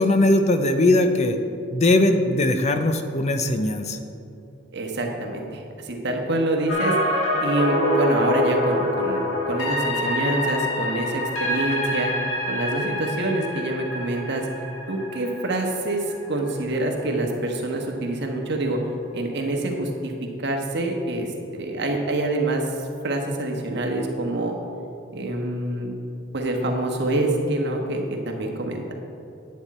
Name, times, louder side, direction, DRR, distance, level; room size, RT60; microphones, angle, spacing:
voice 1, 0.0-1.4 1.7-4.0, left 2 dB, 35° left, 7 dB, 0.6 m, -20 dB
voice 2, 4.7-7.0 7.4-12.1 12.5-14.5 14.9-18.8 19.1-20.1 20.4-21.3 21.5-24.5 25.1-25.9 26.3-28.9, right 1 dB, 60° right, 2 dB, 1.3 m, -26 dB
sound 1, 6.7-16.7 17.1-17.2, left 1 dB, 75° left, 1.8 m, -26 dB
9.9 x 8.5 x 4.2 m, 2.6 s
head